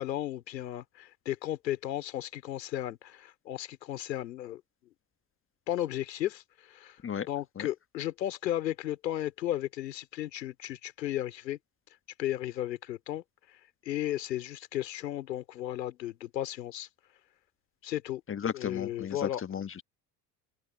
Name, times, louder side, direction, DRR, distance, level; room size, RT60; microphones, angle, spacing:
voice 1, 0.0-4.6 5.7-7.0 7.3-11.6 12.2-13.2 13.8-16.9 17.8-18.2 18.5-19.4, left 13 dB, 80° left, 2.8 m, -34 dB
voice 2, 18.3-19.8, left 8 dB, 25° left, 1.3 m, -34 dB
open air
hypercardioid pair, 65°, 49 cm